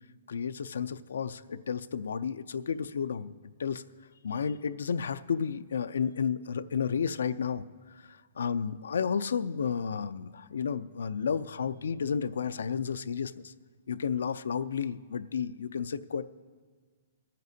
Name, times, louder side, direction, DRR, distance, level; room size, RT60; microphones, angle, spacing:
voice 1, 0.3-3.8 4.2-13.5 13.9-16.2, left 6 dB, 85° left, 14 dB, 0.4 m, -32 dB
25.0 x 9.3 x 2.8 m, 1.5 s
hypercardioid pair, 165°, 0 cm